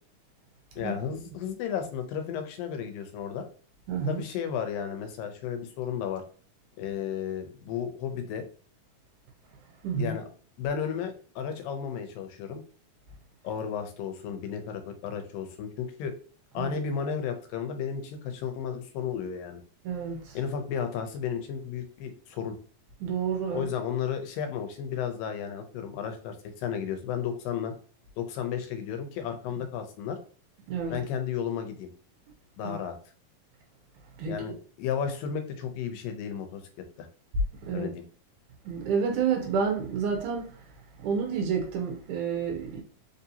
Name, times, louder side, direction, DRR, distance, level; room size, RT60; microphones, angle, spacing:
voice 1, 0.8-3.5 4.1-6.2 6.8-8.4 10.0-10.3 10.6-12.6 13.4-16.1 16.5-19.6 20.3-22.6 23.5-27.7 28.2-30.2 30.9-31.9 32.6-33.0 34.3-36.6 37.0-37.1 37.7-38.0, left 7 dB, 90° left, 2.3 m, -33 dB
voice 2, 3.9-4.2 9.8-10.2 16.6-16.7 19.8-20.4 23.0-23.7 30.7-31.0 32.6-32.8 34.2-34.4 37.6-37.9 38.7-40.7 41.0-42.8, right 6 dB, 80° right, 1.9 m, -29 dB
5.1 x 2.7 x 2.7 m
omnidirectional pair, 3.9 m